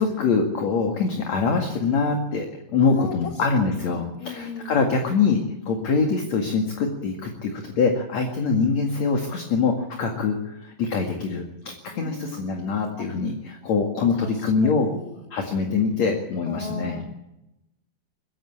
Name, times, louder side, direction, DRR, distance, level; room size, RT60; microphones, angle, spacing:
voice 1, 0.0-9.7 10.0-14.9 15.3-17.0, left 4 dB, 50° left, 3 dB, 3.0 m, -24 dB
voice 2, 2.8-3.1 3.6-4.9 11.9-12.5 13.0-13.1 14.1-14.3 14.6-15.2 16.5-17.0, left 3 dB, 25° left, 2 dB, 2.8 m, -36 dB
22.0 x 16.5 x 8.7 m, 0.90 s
omnidirectional pair, 4.2 m